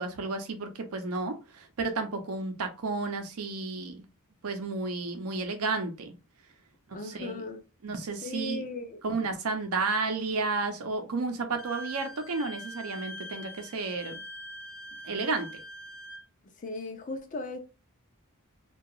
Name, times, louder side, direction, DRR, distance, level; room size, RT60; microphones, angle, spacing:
voice 1, 0.0-4.0 4.4-6.2 6.9-7.4 7.8-8.6 9.0-14.2 15.0-15.5, right 3 dB, 85° right, 0.6 m, -32 dB
voice 2, 6.9-7.6 8.2-9.0 16.6-17.6, left 3 dB, 35° left, 0.5 m, -37 dB
Wind instrument woodwind instrument, 11.6-16.2, equal, 85° left, 0.6 m, -43 dB
2.8 x 2.3 x 2.3 m
head